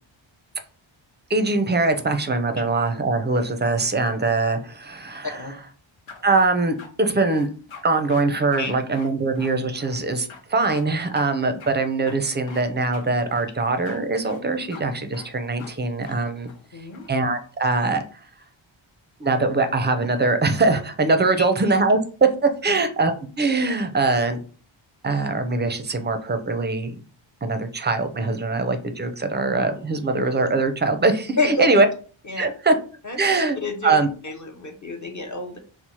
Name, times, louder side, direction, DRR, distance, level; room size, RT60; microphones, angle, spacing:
voice 1, 1.3-5.4 6.2-7.5 7.8-16.5 17.1-18.0 19.2-22.0 22.6-24.4 25.0-26.9 27.4-31.9 32.4-32.7 33.2-33.6 33.8-34.1, right 3 dB, 25° right, 7 dB, 0.4 m, -22 dB
sound 1, 6.1-6.9 7.2-7.8 8.1-8.2 8.5-8.7 8.9-10.0 10.3-10.4 10.7-10.8 11.1-11.3 11.6-11.7 12.1-12.6 12.9-13.1 13.3-14.0 14.2-14.4 14.7-14.8 15.1-15.3 15.6-15.7 16.0-16.2 16.5-17.1, left 5 dB, 70° left, 0.7 m, -43 dB
voice 2, 16.7-17.1 21.4-21.5 31.4-31.7 32.3-32.5 33.0-33.2 33.6-33.9 34.2-35.6, left 2 dB, 40° left, 3 dB, 0.6 m, -28 dB
3.0 x 2.1 x 4.1 m, 0.39 s
wide cardioid pair, 95°, 49 cm